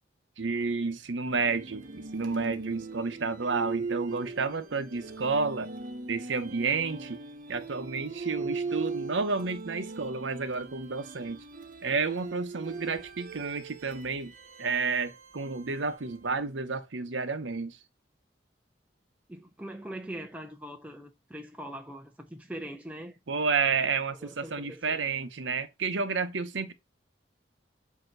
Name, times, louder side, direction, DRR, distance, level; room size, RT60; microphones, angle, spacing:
voice 1, 0.4-5.7 6.1-7.2 7.5-11.4 11.8-14.3 14.6-17.8 23.3-26.7, right 4 dB, 80° right, 0.8 m, -31 dB
sound 1, 1.3-16.4, right 4 dB, 45° right, 1.0 m, -40 dB
voice 2, 8.4-8.8 19.3-23.2 24.1-25.1, right 1 dB, 10° right, 0.5 m, -42 dB
7.9 x 2.8 x 5.9 m
head